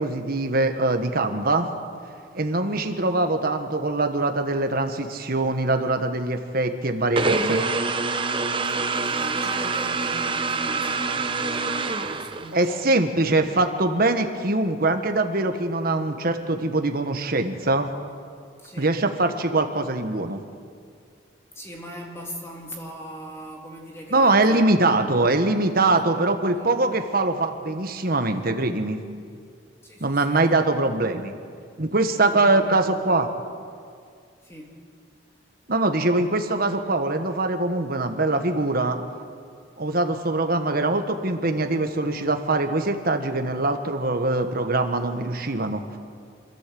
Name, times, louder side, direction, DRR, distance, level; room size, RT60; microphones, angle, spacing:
voice 1, 0.0-1.7 2.3-7.6 12.5-17.9 18.8-20.4 24.1-29.0 30.0-31.3 31.8-33.3 35.7-39.0 39.8-45.8, right 2 dB, 50° right, 6 dB, 1.4 m, -23 dB
sound 1, 7.2-12.7, right 4 dB, 25° right, 0.8 m, -26 dB
voice 2, 8.7-12.9 18.6-19.0 21.5-25.2 25.9-27.1 29.8-30.6 32.2-33.2 34.4-34.8, equal, 15° left, 0 dB, 2.2 m, -41 dB
26.5 x 13.5 x 7.8 m, 2.2 s
head